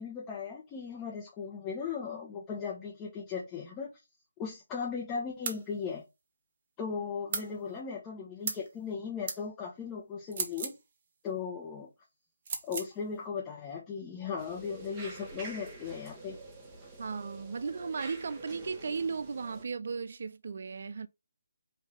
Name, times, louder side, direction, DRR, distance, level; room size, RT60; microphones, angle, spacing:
voice 1, 0.0-3.9 4.4-6.0 6.8-10.7 11.2-11.9 12.6-16.4, left 6 dB, 15° left, 1.0 m, -37 dB
sound 1, 5.5-5.6 7.3-7.5 8.5-8.7 9.3-9.4 10.3-10.8 12.5-12.9, right 5 dB, 40° right, 1.0 m, -35 dB
sound 2, 14.4-19.6, right 2 dB, 20° right, 1.3 m, -47 dB
voice 2, 17.0-21.1, right 5 dB, 55° right, 0.4 m, -36 dB
4.8 x 2.7 x 3.6 m
figure-of-eight pair, 155°, 0 cm